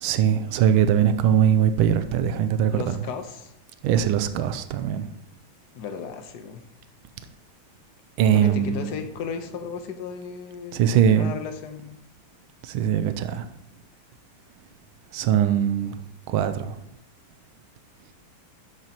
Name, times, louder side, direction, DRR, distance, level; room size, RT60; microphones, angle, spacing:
voice 1, 0.0-3.1 3.8-5.1 8.2-8.9 10.7-11.3 12.7-13.4 15.1-15.9 16.3-16.7, right 9 dB, 80° right, 1.4 m, -21 dB
voice 2, 2.7-3.5 5.7-6.6 8.3-12.0, left 6 dB, 55° left, 1.4 m, -35 dB
13.0 x 7.9 x 3.0 m
omnidirectional pair, 2.3 m